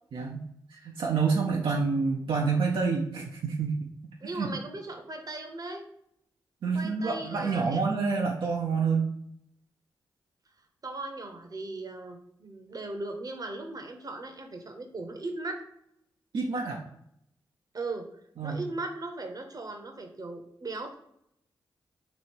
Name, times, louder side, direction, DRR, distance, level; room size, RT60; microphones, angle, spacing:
voice 1, 0.1-0.4 0.7-3.8 4.4-4.5 6.6-9.1 16.3-16.8 18.4-18.6, right 5 dB, 70° right, -1 dB, 0.6 m, -28 dB
voice 2, 4.2-5.9 6.7-7.9 10.8-15.6 17.7-18.0 18.4-20.9, right 2 dB, 45° right, 5 dB, 0.8 m, -38 dB
3.1 x 2.8 x 4.4 m, 0.74 s
supercardioid pair, 45°, 9 cm